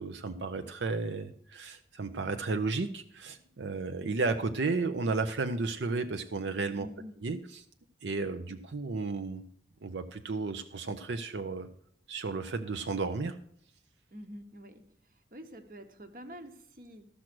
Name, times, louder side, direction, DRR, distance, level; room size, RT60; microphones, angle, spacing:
voice 1, 0.0-6.9 7.2-7.6 8.0-9.4 9.8-11.7 12.1-13.4, right 3 dB, 85° right, 8 dB, 0.6 m, -33 dB
voice 2, 6.7-7.1 14.1-14.8 15.3-17.1, equal, 50° right, 7 dB, 1.1 m, -46 dB
13.5 x 6.2 x 6.1 m, 0.64 s
head